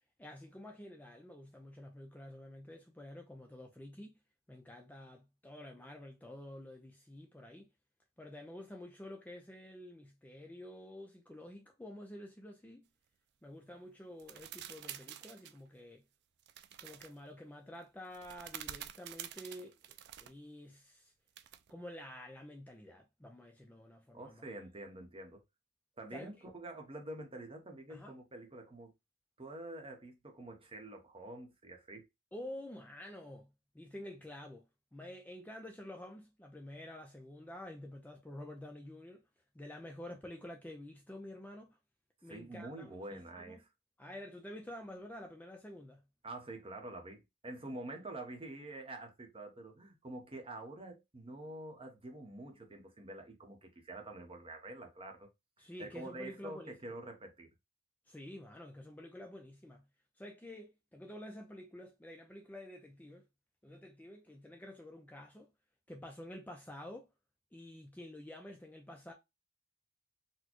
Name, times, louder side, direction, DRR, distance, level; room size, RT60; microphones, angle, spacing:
voice 1, 0.2-4.2 4.5-7.7 8.2-12.9 13.4-16.0 16.8-21.1 21.7-24.4 26.1-26.3 27.9-28.2 32.3-34.6 34.9-39.2 39.5-41.8 42.2-43.6 44.0-46.0 55.6-56.9 58.1-59.8 60.2-63.3 63.6-65.5 65.9-67.1 67.5-69.1, left 1 dB, 10° left, 0.4 m, -49 dB
sound 1, 14.2-15.6 16.5-17.1 18.1-20.3 21.4-21.7, right 11 dB, 55° right, 0.3 m, -48 dB
voice 2, 24.1-25.4 26.0-28.9 29.4-32.0 42.3-43.7 46.2-55.3 55.8-57.5, right 1 dB, 25° right, 0.9 m, -47 dB
4.2 x 2.2 x 2.9 m
head